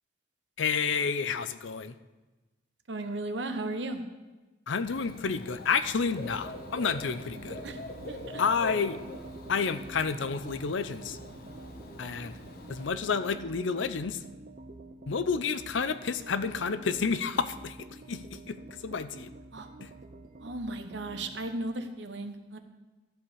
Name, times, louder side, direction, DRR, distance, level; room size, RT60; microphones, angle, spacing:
voice 1, 0.6-2.0 4.7-7.6 8.4-9.0 9.5-11.2 12.0-12.4 12.7-14.2 15.1-18.6 18.8-19.3 19.8-19.9, left 5 dB, 75° left, 12 dB, 0.6 m, -30 dB
voice 2, 2.9-4.0 7.6-7.8 8.1-8.4 19.5-19.7 20.4-22.6, right 2 dB, 65° right, 7 dB, 1.0 m, -35 dB
Dog / Bird, 4.9-12.9, left 1 dB, 50° left, 1.1 m, -44 dB
sound 1, 6.2-21.5, right 2 dB, 45° right, 0.6 m, -48 dB
13.5 x 4.9 x 7.1 m, 1.2 s
head